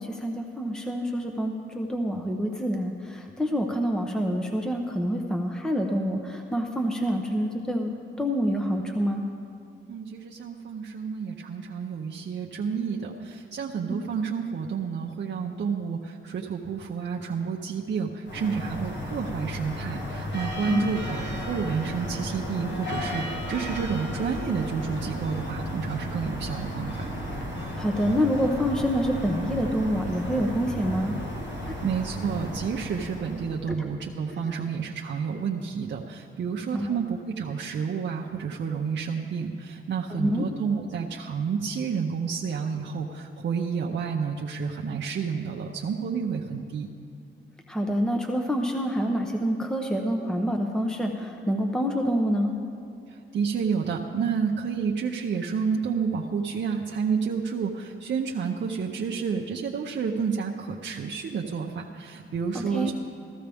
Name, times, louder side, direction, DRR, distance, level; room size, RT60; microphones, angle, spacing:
voice 1, 0.0-7.9 8.2-9.2 20.7-20.8 27.8-31.1 31.7-31.8 33.7-33.9 36.7-36.9 40.2-40.4 47.7-52.5 62.7-62.9, equal, 5° left, 3 dB, 0.8 m, -27 dB
voice 2, 9.9-27.1 31.6-46.9 53.1-62.9, right 6 dB, 60° right, -1 dB, 0.7 m, -30 dB
sound 1, 18.2-33.7, equal, 60° left, 1.9 m, -34 dB
14.5 x 14.5 x 3.5 m, 2.5 s
cardioid pair, 85°, 21 cm